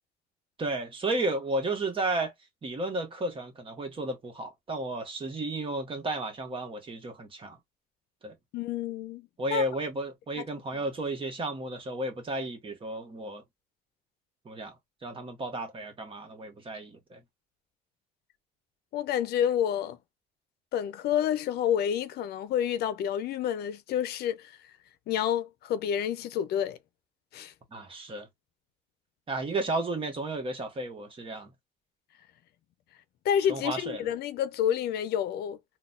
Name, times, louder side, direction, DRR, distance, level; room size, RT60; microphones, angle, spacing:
voice 1, 0.6-2.3 2.6-7.6 8.2-8.3 9.4-13.4 14.4-14.7 15.0-17.2 27.7-28.3 29.3-31.5 33.5-34.1, right 2 dB, 30° right, 1.3 m, -33 dB
voice 2, 8.5-9.6 18.9-20.0 20.7-24.6 25.1-26.8 27.3-27.5 33.2-35.6, left 9 dB, 70° left, 0.6 m, -29 dB
3.9 x 2.3 x 2.5 m
cardioid pair, 110°, 17 cm